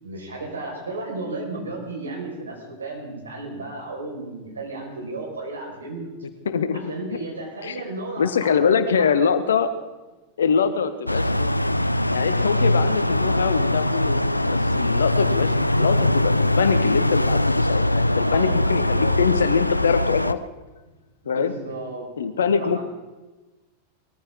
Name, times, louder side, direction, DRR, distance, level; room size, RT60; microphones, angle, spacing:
voice 1, 0.0-6.1 6.9-9.4 18.2-18.6 18.9-19.2 21.2-22.1 22.5-22.8, right 2 dB, 75° right, -1 dB, 5.0 m, -34 dB
voice 2, 6.4-6.9 7.6-7.8 8.2-9.7 10.4-11.5 12.1-20.4 21.3-21.5 22.2-22.8, left 6 dB, 65° left, 11 dB, 1.1 m, -23 dB
sound 1, 11.1-20.3, left 1 dB, 85° left, 0.4 m, -21 dB
20.5 x 14.5 x 3.8 m, 1.2 s
figure-of-eight pair, 90°, 0 cm